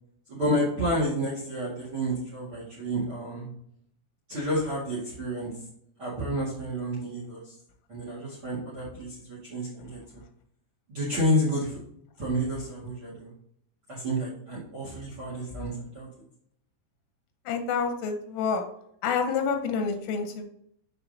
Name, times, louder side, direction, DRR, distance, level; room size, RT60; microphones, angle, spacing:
voice 1, 0.3-3.4 4.3-5.5 6.0-7.5 7.9-10.0 10.9-11.8 12.2-13.3 13.9-16.1, equal, 55° right, -5 dB, 1.4 m, -30 dB
voice 2, 17.5-18.6 19.0-20.4, left 5 dB, 85° left, 5 dB, 3.2 m, -28 dB
7.3 x 7.0 x 2.8 m, 0.71 s
omnidirectional pair, 5.8 m